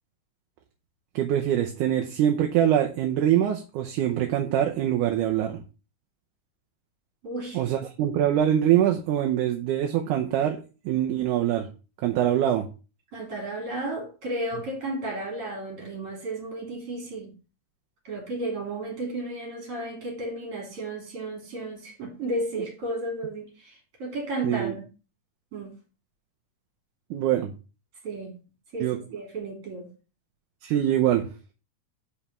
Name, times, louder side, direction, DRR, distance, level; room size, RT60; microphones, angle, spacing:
voice 1, 1.2-5.6 7.5-10.6 10.9-11.7 12.0-12.7 24.4-24.7 27.1-27.5 28.8-29.0 30.6-31.2, right 11 dB, 75° right, 2 dB, 2.3 m, -24 dB
voice 2, 7.2-7.6 13.1-17.3 18.0-24.8 25.5-25.7 28.0-28.3 28.7-29.9, right 2 dB, 45° right, 0 dB, 4.1 m, -33 dB
5.6 x 5.1 x 6.0 m, 0.33 s
omnidirectional pair, 3.7 m